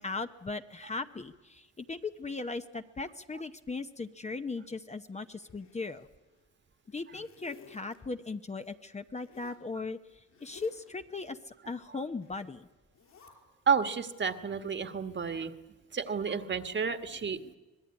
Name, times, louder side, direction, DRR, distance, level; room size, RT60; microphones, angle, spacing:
voice 1, 0.0-6.1 6.9-12.7, left 3 dB, 20° left, 8 dB, 0.9 m, -38 dB
Zipper (clothing), 5.4-6.4 6.8-8.0 9.2-9.6 10.3-10.9 12.2-12.5 12.9-13.3, left 6 dB, 70° left, 6.1 m, -56 dB
voice 2, 13.7-15.5 15.9-17.6, right 6 dB, 40° right, 9 dB, 1.6 m, -31 dB
25.0 x 19.5 x 9.8 m, 1.2 s
cardioid pair, 90°, 30 cm